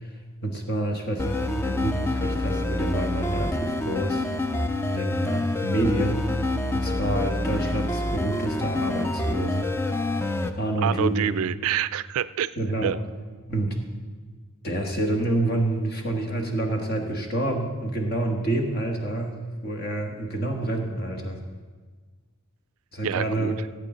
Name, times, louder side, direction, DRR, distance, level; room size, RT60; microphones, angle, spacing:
voice 1, 0.0-4.3 4.8-9.7 10.5-11.3 12.6-12.9 13.5-13.8 14.6-21.4 22.9-23.6, right 1 dB, 45° left, 2 dB, 1.4 m, -28 dB
sound 1, 1.2-10.5, left 2 dB, 10° left, 0.3 m, -27 dB
voice 2, 10.8-12.5 12.8-13.0 23.0-23.5, right 9 dB, 70° right, 17 dB, 0.3 m, -26 dB
16.5 x 8.3 x 3.8 m, 1.4 s
head